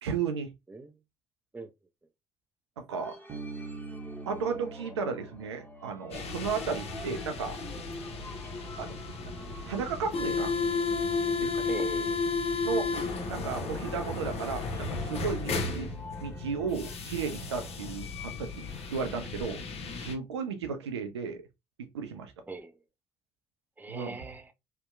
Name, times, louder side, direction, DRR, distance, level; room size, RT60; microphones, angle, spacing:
voice 1, 0.0-0.5 2.8-3.2 4.3-7.6 8.8-9.0 9.7-10.5 11.4-11.7 12.6-12.9 13.3-15.9 16.2-19.6 19.9-21.4 21.9-22.3 23.9-24.2, right 6 dB, 85° right, 0.4 m, -34 dB
sound 1, 2.9-12.9 13.6-17.0, equal, 15° left, 0.8 m, -49 dB
Bass guitar, 3.3-6.8, right 4 dB, 40° right, 0.9 m, -44 dB
sound 2, 6.1-20.2, left 4 dB, 45° left, 0.7 m, -33 dB
voice 2, 11.7-12.3 22.5-22.7 23.8-24.5, right 3 dB, 15° right, 0.5 m, -40 dB
2.7 x 2.1 x 2.3 m
hypercardioid pair, 50°, 14 cm